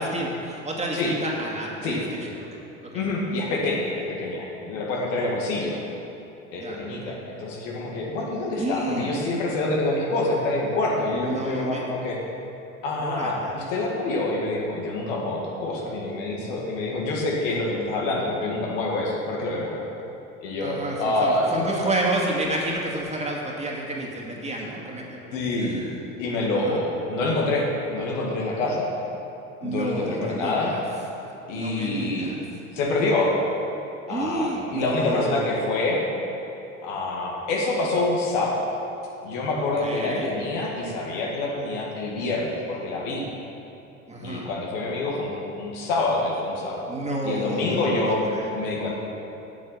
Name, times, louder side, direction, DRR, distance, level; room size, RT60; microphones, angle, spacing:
voice 1, 0.0-3.0 6.6-6.8 7.0-7.2 8.6-9.1 11.1-11.8 13.0-13.5 20.6-26.0 26.5-26.8 29.6-30.8 31.5-32.4 34.1-35.5 39.6-40.3 44.1-44.5 46.9-48.5, right 1 dB, 15° right, -3 dB, 2.3 m, -30 dB
voice 2, 2.9-5.8 6.5-12.2 12.8-19.8 20.4-21.8 24.6-24.7 25.3-25.8 26.2-28.9 29.6-30.8 31.5-32.3 32.7-33.3 34.1-36.0 36.8-38.7 39.2-43.3 44.2-46.9 47.2-48.3 48.5-48.9, left 2 dB, 70° left, -2 dB, 2.2 m, -26 dB
8.6 x 7.1 x 7.7 m, 2.8 s
hypercardioid pair, 80°, 38 cm